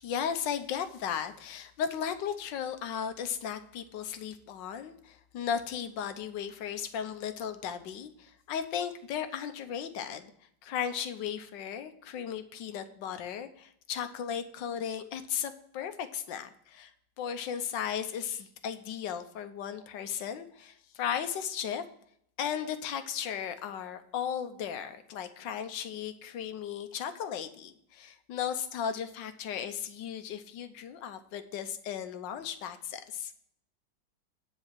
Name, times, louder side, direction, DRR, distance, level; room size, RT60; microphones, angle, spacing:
voice 1, 0.0-10.3 10.6-16.9 17.2-21.8 22.4-33.4, left 8 dB, 75° left, 10 dB, 1.5 m, -36 dB
9.9 x 4.2 x 7.3 m, 0.70 s
omnidirectional pair, 2.0 m